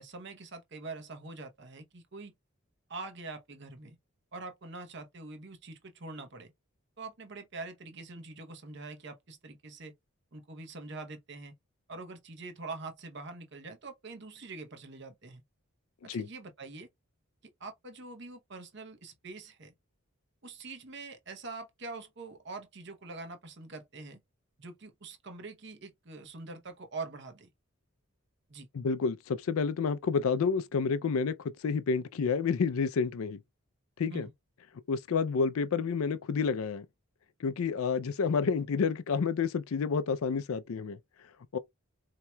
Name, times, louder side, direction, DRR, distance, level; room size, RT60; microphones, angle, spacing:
voice 1, 0.0-2.3 2.9-4.0 4.3-6.5 7.0-9.9 10.3-11.5 11.9-15.4 16.0-16.9 17.6-19.7 20.4-24.2 24.6-27.5 28.5-28.7 34.1-34.3, right 3 dB, 50° right, 0.8 m, -44 dB
voice 2, 28.7-33.4 34.0-34.3 34.9-36.9 37.4-41.0 41.5-41.6, left 5 dB, 80° left, 0.4 m, -29 dB
4.3 x 2.8 x 2.2 m
head